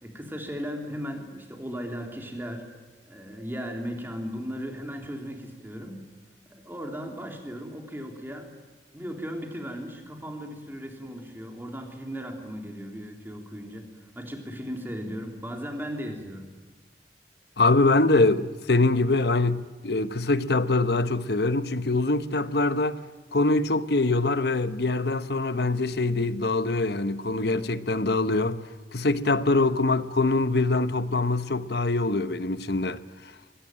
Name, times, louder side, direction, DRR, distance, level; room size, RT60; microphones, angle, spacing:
voice 1, 0.0-2.8 3.0-6.0 6.5-8.5 8.9-16.5, equal, 10° right, 3.4 m, -36 dB
voice 2, 17.6-23.0 23.3-28.6 28.9-33.0, left 2 dB, 65° left, 1.1 m, -24 dB
24.5 x 18.5 x 8.9 m
head